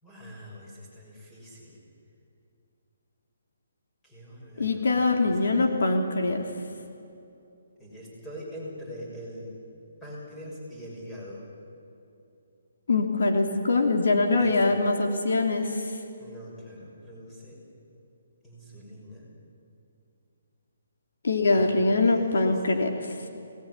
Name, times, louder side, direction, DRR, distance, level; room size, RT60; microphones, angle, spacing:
voice 1, 0.0-1.8 4.0-4.9 5.2-5.7 7.8-9.5 10.0-11.4 14.4-14.6 16.2-17.6 18.4-19.3 21.3-22.5, equal, 5° left, -5 dB, 6.3 m, -43 dB
voice 2, 4.6-6.5 12.9-15.9 21.2-22.9, left 3 dB, 75° left, 4 dB, 3.2 m, -23 dB
23.0 x 19.5 x 9.7 m, 2.7 s
hypercardioid pair, 170°, 0 cm